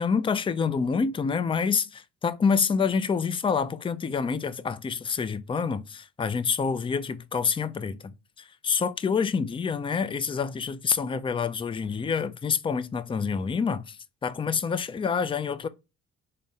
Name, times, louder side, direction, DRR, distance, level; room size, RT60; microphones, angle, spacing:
voice 1, 0.0-14.0 14.2-15.7, left 5 dB, 20° left, 0.4 m, -27 dB
3.9 x 2.1 x 3.5 m
cardioid pair, 90°, 30 cm